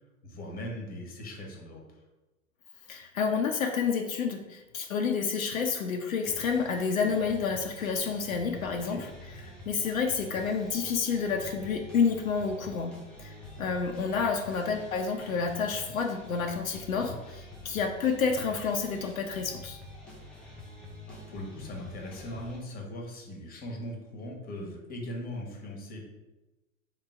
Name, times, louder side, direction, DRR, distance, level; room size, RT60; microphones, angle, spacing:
voice 1, 0.2-1.8 8.7-9.0 16.9-17.2 21.1-26.0, left 1 dB, 20° left, 0 dB, 1.1 m, -40 dB
voice 2, 2.9-9.1 9.7-19.8, left 5 dB, 75° left, 3 dB, 0.7 m, -29 dB
sound 1, 6.2-22.6, left 1 dB, 5° left, 0.3 m, -47 dB
3.6 x 3.0 x 4.8 m, 1.1 s
figure-of-eight pair, 95°, 41 cm